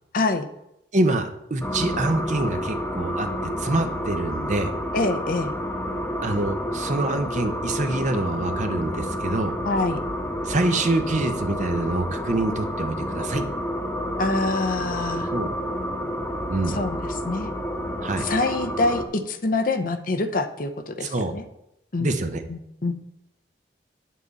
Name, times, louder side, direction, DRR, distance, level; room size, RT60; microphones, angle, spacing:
voice 1, 0.1-0.5 4.9-5.5 9.6-10.0 14.2-15.3 16.7-17.5 18.2-21.4 21.9-22.1 22.5-22.9, left 3 dB, 50° left, 8 dB, 0.7 m, -25 dB
voice 2, 0.9-3.3 3.6-4.7 6.2-9.5 10.4-13.4 15.3-15.5 16.5-16.8 18.0-18.3 21.0-21.3 22.0-22.4, right 2 dB, 45° right, 7 dB, 0.7 m, -25 dB
sound 1, 1.6-19.0, equal, 15° left, 1.0 m, -29 dB
9.6 x 7.5 x 4.0 m, 0.83 s
head